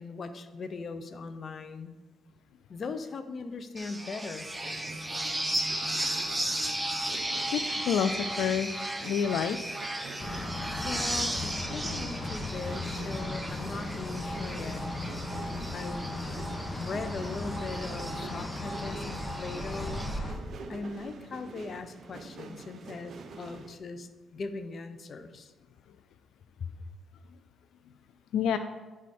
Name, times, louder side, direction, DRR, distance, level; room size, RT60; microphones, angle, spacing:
voice 1, 0.0-2.0 2.7-4.5 10.8-14.9 15.7-16.2 16.7-20.1 20.7-25.5 26.6-26.7, left 4 dB, 50° left, 10 dB, 0.6 m, -39 dB
sound 1, 3.8-20.2, right 1 dB, 5° right, 0.7 m, -35 dB
sound 2, 4.4-23.7, right 3 dB, 55° right, 0.8 m, -47 dB
voice 2, 7.5-8.7 9.0-9.6 28.3-28.6, left 8 dB, 80° left, 9 dB, 0.3 m, -28 dB
sound 3, 10.2-20.3, left 2 dB, 30° left, 1.3 m, -37 dB
10.0 x 4.8 x 4.2 m, 1.2 s
cardioid pair, 90°, 0 cm